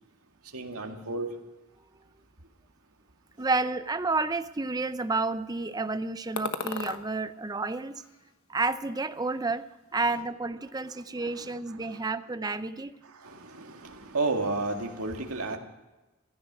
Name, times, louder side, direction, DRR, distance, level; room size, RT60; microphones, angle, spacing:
voice 1, 0.5-1.3 11.2-12.1 13.0-15.6, right 3 dB, 85° right, 3 dB, 1.9 m, -33 dB
voice 2, 3.4-8.0 8.5-9.7 9.9-12.9, right 3 dB, 15° right, 12 dB, 0.5 m, -30 dB
sound 1, 6.4-7.0 7.6-8.6 8.8-9.7, left 4 dB, 75° left, 1.2 m, -38 dB
16.0 x 14.5 x 6.1 m, 1.1 s
head